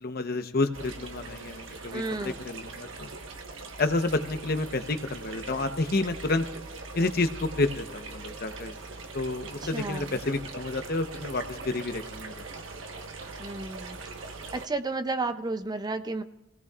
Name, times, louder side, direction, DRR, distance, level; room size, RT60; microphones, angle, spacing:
voice 1, 0.0-3.1 3.8-6.4 6.9-8.7 9.1-12.4, left 2 dB, 50° left, 8 dB, 0.9 m, -29 dB
sound 1, 0.7-14.7, right 3 dB, 90° right, 1.2 m, -41 dB
voice 2, 1.9-2.4 9.6-10.2 13.4-14.0 14.5-16.2, right 3 dB, 20° right, 10 dB, 0.5 m, -32 dB
29.0 x 17.5 x 2.4 m, 0.95 s
head